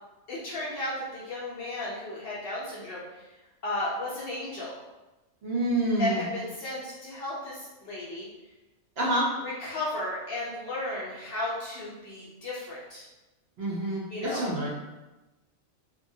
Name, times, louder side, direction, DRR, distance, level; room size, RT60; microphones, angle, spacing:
voice 1, 0.3-3.3 3.6-4.8 6.0-8.3 9.4-13.0 14.1-14.4, left 2 dB, 55° left, -6 dB, 0.7 m, -34 dB
voice 2, 5.4-6.2 9.0-9.2 13.6-14.7, right 1 dB, 60° right, -4 dB, 0.7 m, -27 dB
2.8 x 2.2 x 2.6 m, 1.1 s
omnidirectional pair, 1.4 m